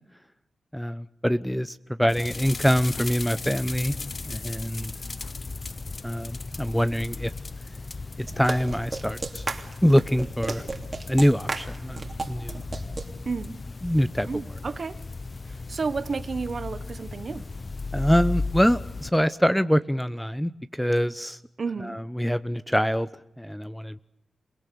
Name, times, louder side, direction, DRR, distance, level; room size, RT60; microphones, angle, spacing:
voice 1, 0.7-3.9 4.3-4.9 6.0-7.3 8.2-9.5 9.8-10.6 11.1-12.0 12.3-12.6 13.8-14.3 17.9-21.4 21.8-23.1 23.4-24.0, equal, 5° left, 13 dB, 0.8 m, -24 dB
sound 1, 2.1-19.1, left 3 dB, 40° left, 0.8 m, -36 dB
sound 2, 8.3-13.1, right 3 dB, 40° right, 3.0 m, -33 dB
voice 2, 13.2-13.6 14.3-15.0 15.7-17.4 21.6-21.9, right 4 dB, 55° right, 13 dB, 1.4 m, -31 dB
28.0 x 18.5 x 6.9 m, 0.84 s
cardioid pair, 60°, 0 cm